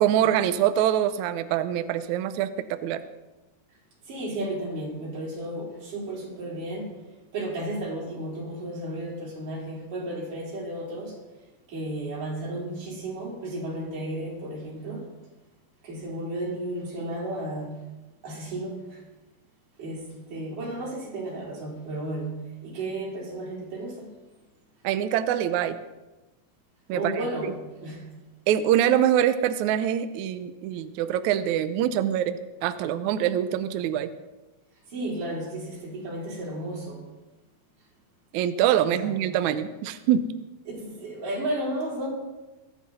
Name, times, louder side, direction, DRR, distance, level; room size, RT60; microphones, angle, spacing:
voice 1, 0.0-3.0 24.8-25.8 26.9-27.2 28.5-34.1 38.3-40.2, right 10 dB, 90° right, 1.7 m, -24 dB
voice 2, 4.1-6.9 7.3-11.2 11.7-15.1 15.8-17.8 18.2-19.0 19.8-24.1 26.9-28.1 34.9-37.0 38.8-39.2 40.7-42.1, right 1 dB, 60° right, 5.6 m, -33 dB
22.5 x 9.7 x 4.2 m
omnidirectional pair, 4.2 m